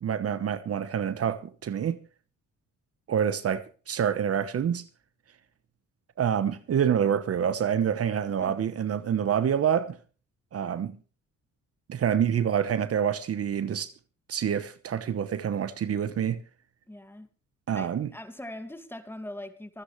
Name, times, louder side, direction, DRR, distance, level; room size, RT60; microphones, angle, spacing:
voice 1, 0.0-2.0 3.1-4.8 6.2-10.0 10.5-11.0 11.9-13.9 14.3-16.4 17.7-18.1, right 8 dB, 50° right, 1.0 m, -27 dB
voice 2, 16.9-17.3 17.7-19.8, left 1 dB, 5° left, 2.1 m, -41 dB
25.0 x 9.6 x 3.2 m
cardioid pair, 90°, 30 cm